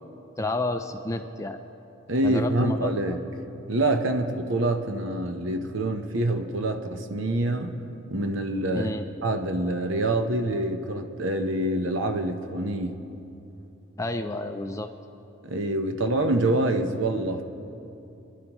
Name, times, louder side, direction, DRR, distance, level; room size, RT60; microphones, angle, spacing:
voice 1, 0.4-1.6 2.2-3.2 8.7-9.0 14.0-14.9, left 2 dB, 15° left, 6 dB, 0.4 m, -30 dB
voice 2, 2.1-3.2 3.7-7.8 8.1-8.9 9.2-13.0 15.4-17.4, right 1 dB, 65° right, 5 dB, 0.9 m, -26 dB
28.5 x 11.0 x 3.1 m, 2.9 s
head